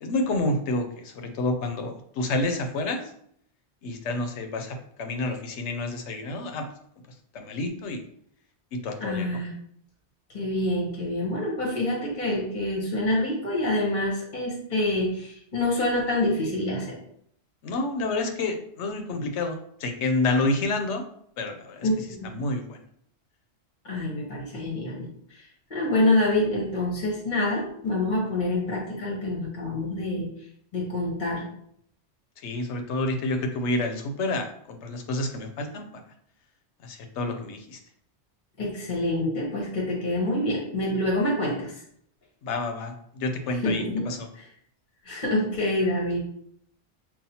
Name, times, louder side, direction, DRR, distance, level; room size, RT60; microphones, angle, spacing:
voice 1, 0.0-3.0 3.8-6.6 7.3-8.0 8.8-9.4 17.6-21.0 21.4-21.9 22.2-22.8 32.4-35.9 36.8-37.8 42.4-44.3, left 2 dB, 80° left, 5 dB, 0.9 m, -29 dB
voice 2, 9.0-9.5 10.3-17.0 21.8-22.3 23.8-25.1 25.7-30.3 30.7-31.5 38.6-41.7 43.6-44.1 44.4-44.5 45.0-46.2, left 1 dB, 45° left, -3 dB, 1.0 m, -26 dB
5.5 x 2.4 x 2.7 m, 0.67 s
omnidirectional pair, 1.2 m